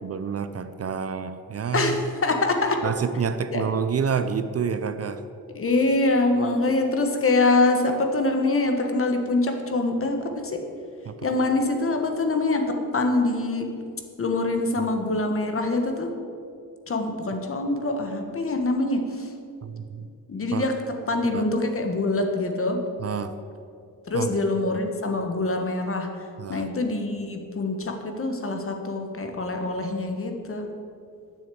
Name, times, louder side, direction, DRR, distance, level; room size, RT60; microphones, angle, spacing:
voice 1, 0.0-2.0 2.8-5.2 11.1-11.2 14.8-14.9 19.6-20.1 20.5-20.7 21.3-21.5 23.0-23.3 24.1-24.4 26.4-26.7, right 6 dB, 45° right, 10 dB, 0.5 m, -28 dB
voice 2, 1.7-2.8 3.5-3.6 5.5-10.7 11.2-13.7 14.2-16.1 16.9-19.3 20.3-22.8 24.1-26.1 26.5-30.7, left 2 dB, 40° left, 4 dB, 1.4 m, -24 dB
10.0 x 7.1 x 8.3 m, 2.4 s
wide cardioid pair, 145°, 35 cm